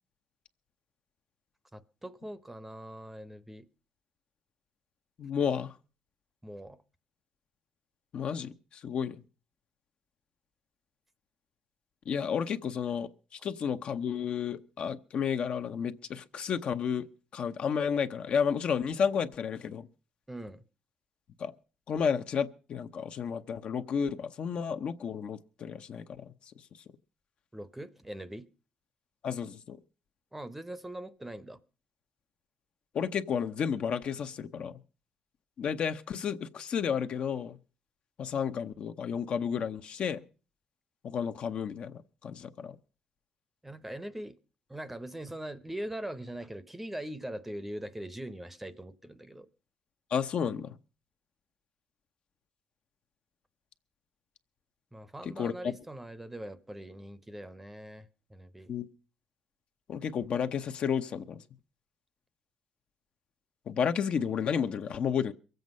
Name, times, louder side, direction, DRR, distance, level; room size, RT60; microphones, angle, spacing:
voice 1, 1.7-3.7 6.4-6.8 20.3-20.6 27.5-28.5 30.3-31.6 43.6-44.4 44.7-49.5 54.9-58.7, right 1 dB, 10° right, 0.7 m, -42 dB
voice 2, 5.2-5.7 8.1-9.2 12.1-17.1 17.3-19.9 21.4-21.5 21.9-26.3 29.2-29.8 32.9-34.8 35.6-37.6 38.2-40.2 41.0-42.8 50.1-50.8 55.2-55.5 58.7-58.9 59.9-61.4 63.7-65.3, left 7 dB, 55° left, 0.8 m, -32 dB
23.0 x 8.0 x 5.3 m
cardioid pair, 130°, 2 cm